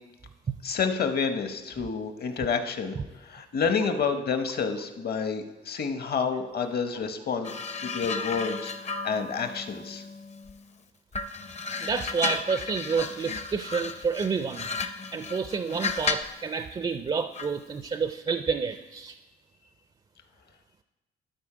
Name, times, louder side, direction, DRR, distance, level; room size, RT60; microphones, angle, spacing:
voice 1, 0.6-2.9 3.2-7.5 7.8-10.0, left 5 dB, 55° left, 8 dB, 0.9 m, -29 dB
sound 1, 7.4-10.7 11.1-16.4 17.4-17.6, left 4 dB, 35° left, 0.6 m, -34 dB
voice 2, 11.8-14.7 15.1-19.2, right 5 dB, 25° right, 9 dB, 0.4 m, -29 dB
12.0 x 4.1 x 5.0 m, 1.1 s
cardioid pair, 90°, 20 cm